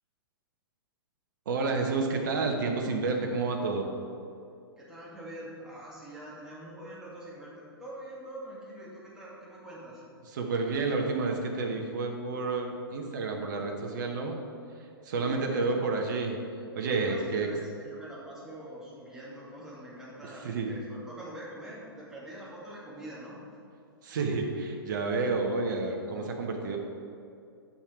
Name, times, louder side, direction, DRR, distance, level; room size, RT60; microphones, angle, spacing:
voice 1, 1.5-3.9 10.4-14.4 15.0-16.4 16.7-17.5 20.4-20.7 24.0-26.8, right 3 dB, 50° right, 2 dB, 1.2 m, -30 dB
voice 2, 4.8-10.0 15.2-15.8 17.0-23.4, right 1 dB, 5° right, -8 dB, 2.4 m, -44 dB
8.8 x 7.2 x 4.6 m, 2.5 s
figure-of-eight pair, 105°, 13 cm